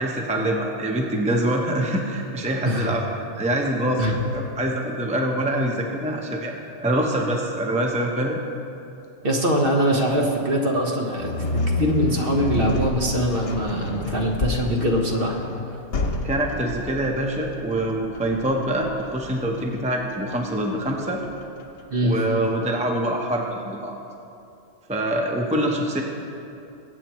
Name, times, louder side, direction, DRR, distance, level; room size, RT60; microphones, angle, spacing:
voice 1, 0.0-3.0 3.4-6.5 6.8-8.4 16.2-21.2 22.0-23.9 24.9-26.0, right 1 dB, 5° right, 1 dB, 0.8 m, -25 dB
voice 2, 9.2-15.4 21.9-22.2, equal, 45° right, 0 dB, 1.4 m, -23 dB
sound 1, 11.2-22.3, left 2 dB, 50° left, 1.1 m, -30 dB
22.0 x 8.7 x 3.1 m, 2.7 s
omnidirectional pair, 1.3 m